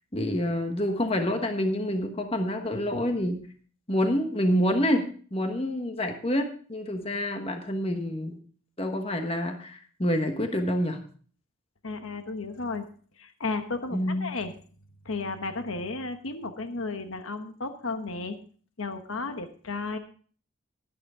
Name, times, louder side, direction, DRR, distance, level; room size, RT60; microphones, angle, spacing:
voice 1, 0.1-3.4 3.9-8.4 8.8-11.0 13.9-14.3, equal, 25° left, 6 dB, 1.2 m, -27 dB
voice 2, 11.8-12.9 13.2-14.5 15.0-18.4 18.8-20.0, left 3 dB, 80° left, 8 dB, 1.1 m, -33 dB
12.0 x 11.5 x 3.6 m, 0.43 s
head